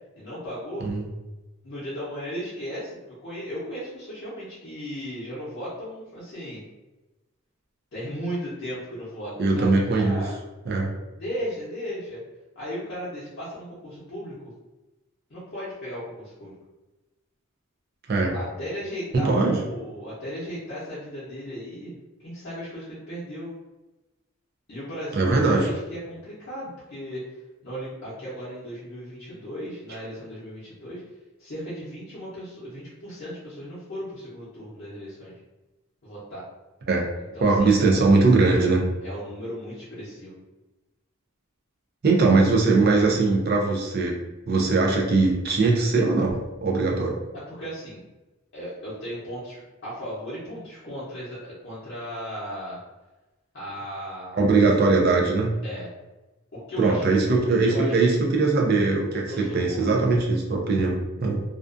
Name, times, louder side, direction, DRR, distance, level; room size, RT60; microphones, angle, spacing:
voice 1, 0.2-0.9 1.6-6.6 7.9-10.4 11.2-12.2 12.6-14.5 15.3-16.6 18.3-23.5 24.7-27.2 27.6-31.0 31.4-35.3 36.0-36.4 37.2-37.8 39.0-40.4 47.5-48.0 48.5-52.8 53.5-54.4 55.6-55.9 56.5-57.0 57.4-58.1 59.1-60.1, equal, 50° left, -10 dB, 0.7 m, -36 dB
voice 2, 9.4-10.3 10.7-10.9 18.1-18.3 19.1-19.6 25.1-25.7 36.9-37.1 37.4-38.9 42.0-44.2 44.5-47.2 54.4-55.5 56.8-61.4, right 3 dB, 45° right, -1 dB, 0.4 m, -21 dB
2.5 x 2.3 x 2.4 m, 1.1 s
head